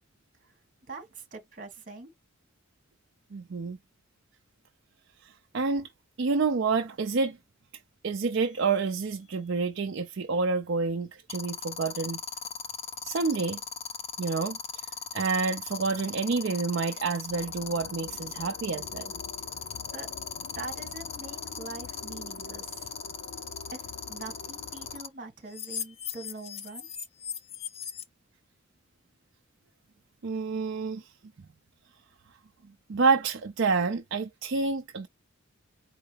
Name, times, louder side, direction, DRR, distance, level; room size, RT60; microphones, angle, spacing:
voice 1, 0.9-2.1 19.9-20.1 20.5-22.9 23.7-26.9, right 3 dB, 40° right, 1.6 m, -43 dB
voice 2, 3.3-3.8 5.2-5.9 6.2-7.4 8.0-12.2 13.0-13.6 14.2-14.8 15.1-19.1 30.2-31.1 32.9-35.1, right 4 dB, 60° right, 0.5 m, -28 dB
sound 1, 8.4-8.7 11.3-25.1 25.5-28.0, left 7 dB, 30° left, 0.5 m, -37 dB
sound 2, 17.3-25.0, left 4 dB, 75° left, 0.5 m, -46 dB
4.6 x 3.2 x 3.4 m
head